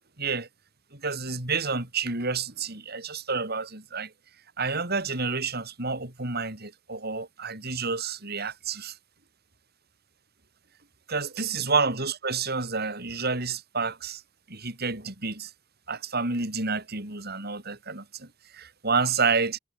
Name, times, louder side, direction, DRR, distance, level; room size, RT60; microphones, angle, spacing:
voice 1, 0.2-0.5 0.9-4.1 4.6-8.9 11.1-14.2 14.5-15.5 15.9-18.3 18.5-19.6, right 4 dB, 50° right, 6.3 m, -29 dB
head